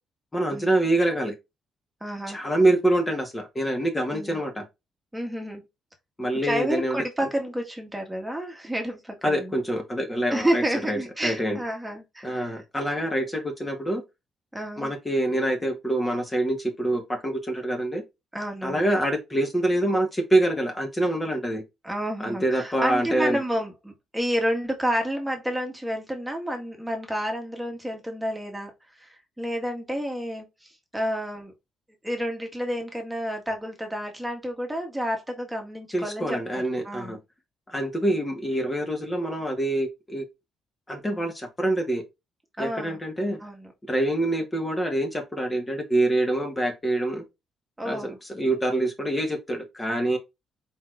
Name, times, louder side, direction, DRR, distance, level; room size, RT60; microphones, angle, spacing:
voice 1, 0.3-1.3 2.3-4.6 6.2-7.0 9.2-11.6 12.2-14.0 14.8-18.0 18.6-21.6 22.2-23.4 35.9-37.2 37.7-40.2 40.9-42.0 42.6-43.4 43.9-47.2 47.8-50.2, right 1 dB, 20° left, 1.4 m, -25 dB
voice 2, 2.0-2.4 4.1-4.4 5.1-5.6 6.3-9.5 10.3-12.6 14.5-14.9 18.3-18.9 21.8-31.5 32.0-37.2 42.6-43.0 43.4-43.7 47.8-48.2, equal, 10° right, 1.6 m, -30 dB
4.7 x 3.9 x 2.5 m
cardioid pair, 90°, 0 cm